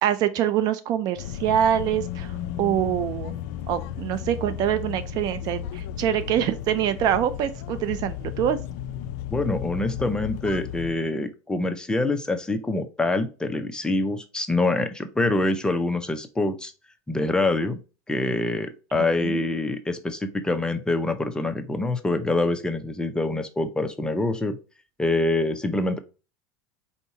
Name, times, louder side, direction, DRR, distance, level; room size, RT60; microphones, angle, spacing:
voice 1, 0.0-3.3 3.7-8.6 19.0-19.4, right 10 dB, 50° right, 12 dB, 0.5 m, -25 dB
sound 1, 1.2-10.9, left 10 dB, 70° left, 0.4 m, -34 dB
voice 2, 9.3-16.7 17.1-17.8 18.1-24.6 25.0-26.0, left 2 dB, 10° left, 7 dB, 0.6 m, -25 dB
4.6 x 2.8 x 4.0 m, 0.33 s
supercardioid pair, 115°, 8 cm